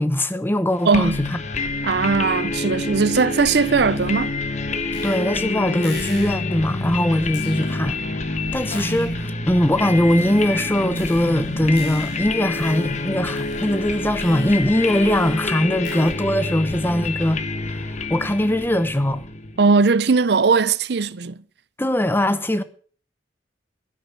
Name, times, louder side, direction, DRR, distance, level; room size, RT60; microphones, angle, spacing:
voice 1, 0.0-1.4 5.0-8.0 8.5-9.2 9.5-17.4 17.8-17.9 18.1-19.2 21.8-22.6, left 1 dB, 10° left, 0.9 m, -21 dB
sound 1, 0.9-19.6, left 3 dB, 40° left, 1.2 m, -27 dB
voice 2, 0.9-1.2 1.8-4.3 19.6-21.4, right 4 dB, 60° right, 0.5 m, -19 dB
sound 2, 4.9-5.4 5.8-6.5 7.3-8.0 8.7-9.4 10.2-16.1, left 4 dB, 70° left, 4.1 m, -40 dB
12.5 x 10.5 x 5.9 m
head